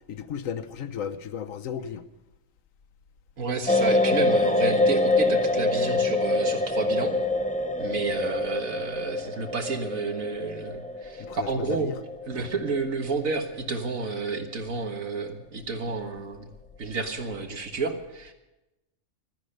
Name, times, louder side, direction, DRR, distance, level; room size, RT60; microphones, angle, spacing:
voice 1, 0.1-2.0 11.2-12.0, left 8 dB, 80° left, 1.3 m, -34 dB
voice 2, 3.4-7.1 7.8-11.9 12.3-16.5 16.8-18.3, right 4 dB, 90° right, 2.0 m, -31 dB
sound 1, 3.7-13.6 13.9-14.0, left 2 dB, 10° left, 0.6 m, -25 dB
15.5 x 13.0 x 6.6 m
omnidirectional pair, 1.4 m